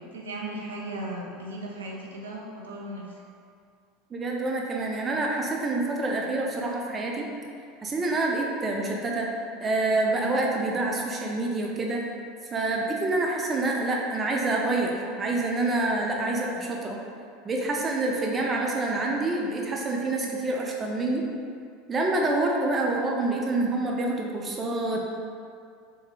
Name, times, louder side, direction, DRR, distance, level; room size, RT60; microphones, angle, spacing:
voice 1, 0.0-3.2 22.6-22.7, right 1 dB, 85° right, -3 dB, 0.5 m, -37 dB
voice 2, 4.1-7.3 7.8-9.3 9.6-12.0 12.5-14.9 15.2-17.0 17.4-21.3 21.9-25.0, right 2 dB, 25° right, -1 dB, 0.5 m, -27 dB
3.6 x 3.0 x 2.3 m, 2.3 s
hypercardioid pair, 85°, 0 cm